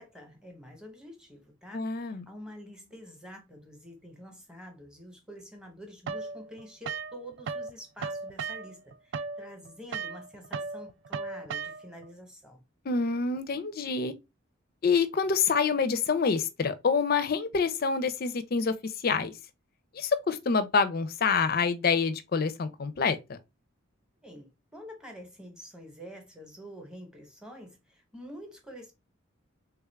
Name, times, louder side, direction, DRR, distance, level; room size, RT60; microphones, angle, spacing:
voice 1, 0.0-12.6 24.2-28.9, equal, 5° right, 0.8 m, -47 dB
voice 2, 1.7-2.2 12.9-14.1 14.8-19.3 19.9-23.4, left 5 dB, 45° left, 0.4 m, -27 dB
sound 1, 6.1-7.7 8.0-12.1, right 5 dB, 60° right, 0.3 m, -36 dB
3.4 x 2.4 x 3.2 m
head